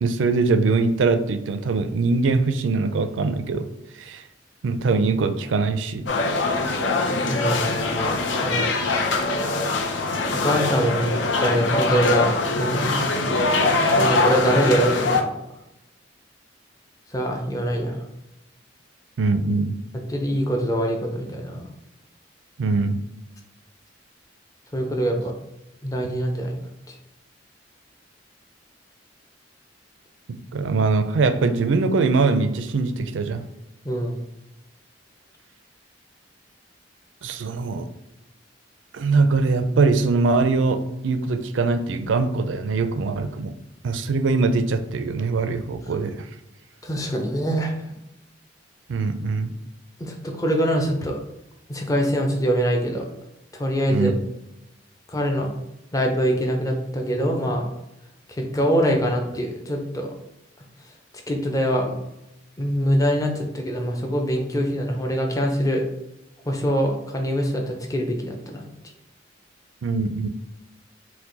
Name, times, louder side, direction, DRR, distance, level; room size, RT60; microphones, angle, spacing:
voice 1, 0.0-3.7 4.0-4.2 4.6-6.0 19.2-19.8 22.6-23.0 30.5-33.4 37.2-37.9 38.9-43.5 43.8-46.2 48.9-49.5 53.9-54.1 69.8-70.3, right 4 dB, 85° right, 10 dB, 0.4 m, -22 dB
sound 1, 6.1-15.2, left 3 dB, 80° left, 0.6 m, -23 dB
voice 2, 7.3-8.7 10.3-11.1 11.4-12.3 12.6-13.1 13.4-15.3 17.1-18.0 20.1-21.7 24.7-25.3 25.8-26.6 26.9-27.0 33.8-34.2 46.8-47.7 50.0-51.2 51.7-53.0 53.5-54.1 55.1-55.5 55.9-57.7 58.5-60.1 61.3-61.9 62.6-65.8 66.5-68.6, equal, 20° left, 2 dB, 0.6 m, -24 dB
4.6 x 2.2 x 3.9 m, 0.90 s
head